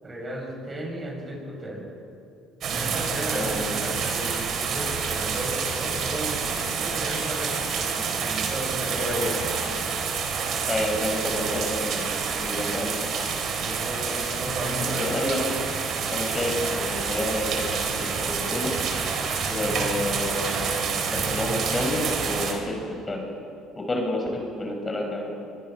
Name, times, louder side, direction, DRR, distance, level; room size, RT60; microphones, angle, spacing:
voice 1, 0.0-1.9 2.6-9.5 13.6-15.1, equal, 30° right, 0 dB, 7.2 m, -34 dB
sound 1, 2.6-22.5, right 6 dB, 60° right, 4.0 m, -28 dB
voice 2, 3.3-3.8 10.7-12.1 12.4-13.1 15.0-15.6 16.1-18.7 19.5-22.8 23.1-23.2 23.8-25.3, left 1 dB, 25° left, 1 dB, 5.4 m, -29 dB
23.5 x 22.0 x 6.0 m, 2.6 s
supercardioid pair, 70°, 0 cm